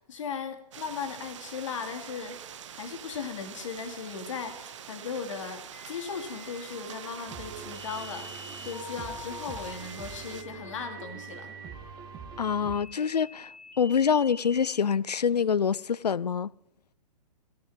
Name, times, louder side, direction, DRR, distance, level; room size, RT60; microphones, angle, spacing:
voice 1, 0.0-8.3 8.6-11.5, left 5 dB, 50° left, 2.3 m, -37 dB
sound 1, 0.7-10.4, right 9 dB, 50° right, 0.9 m, -45 dB
sound 2, 5.7-14.7, left 2 dB, 5° left, 2.7 m, -46 dB
sound 3, 7.3-12.8, right 6 dB, 20° right, 1.5 m, -45 dB
voice 2, 12.4-13.5 13.8-16.5, left 7 dB, 75° left, 0.4 m, -25 dB
16.0 x 6.9 x 9.2 m
figure-of-eight pair, 120°, 20 cm